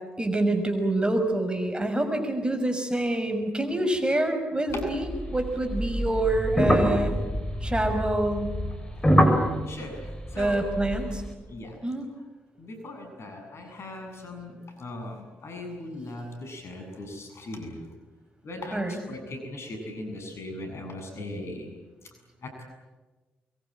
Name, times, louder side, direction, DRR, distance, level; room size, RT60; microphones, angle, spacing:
voice 1, 0.2-7.2 7.6-8.5 10.4-11.2 11.8-12.1 18.7-19.0, right 1 dB, 20° right, 5 dB, 6.2 m, -26 dB
sound 1, 4.7-11.3, equal, 15° left, 6.9 m, -26 dB
voice 2, 9.7-10.7 11.5-11.8 12.6-17.9 18.4-21.8 22.4-22.6, left 1 dB, 55° left, 4 dB, 7.5 m, -39 dB
24.0 x 23.0 x 8.9 m, 1.2 s
hypercardioid pair, 40°, 5 cm